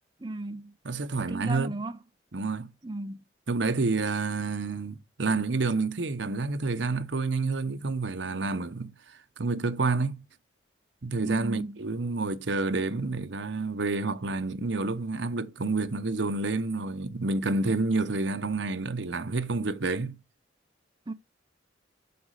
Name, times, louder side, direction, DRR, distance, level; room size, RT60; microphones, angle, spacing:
voice 1, 0.2-0.8 1.2-2.0 2.8-3.2 11.2-11.8 21.1-21.2, right 2 dB, 25° right, 0.6 m, -35 dB
voice 2, 0.8-1.8 2.3-2.7 3.5-10.2 11.0-20.2, right 3 dB, 75° right, 0.9 m, -29 dB
7.0 x 5.2 x 6.4 m
head